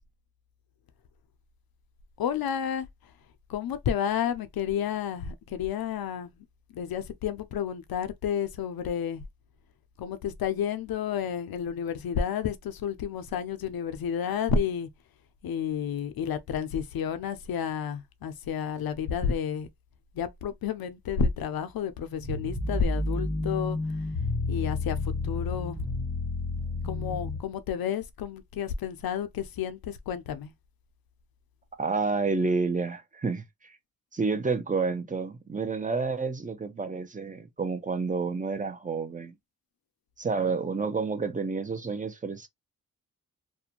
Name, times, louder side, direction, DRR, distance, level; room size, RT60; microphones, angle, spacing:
voice 1, 2.2-2.9 3.5-6.3 6.7-9.2 10.0-14.9 15.4-19.7 20.1-23.8 24.5-25.8 26.8-30.5, left 7 dB, 80° left, 0.5 m, -31 dB
sound 1, 22.2-27.4, left 2 dB, 5° right, 1.0 m, -30 dB
voice 2, 31.8-33.8 34.1-39.3 40.2-42.5, right 4 dB, 25° right, 0.5 m, -29 dB
2.5 x 2.1 x 2.8 m
wide cardioid pair, 100°, 35 cm